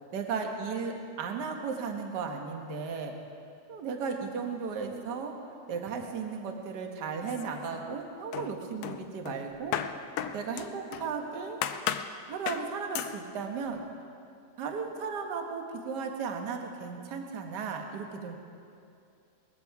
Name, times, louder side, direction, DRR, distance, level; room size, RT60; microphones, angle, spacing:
voice 1, 0.1-3.1 3.7-5.3 5.7-9.7 10.3-11.6 12.3-13.8 14.6-18.4, right 5 dB, 50° right, 3 dB, 1.3 m, -35 dB
sound 1, 7.2-8.0 8.3-11.1 11.6-12.1 12.5-12.7 12.9-13.2, left 10 dB, 75° left, 1.9 m, -35 dB
20.0 x 15.5 x 4.8 m, 2.5 s
omnidirectional pair, 3.6 m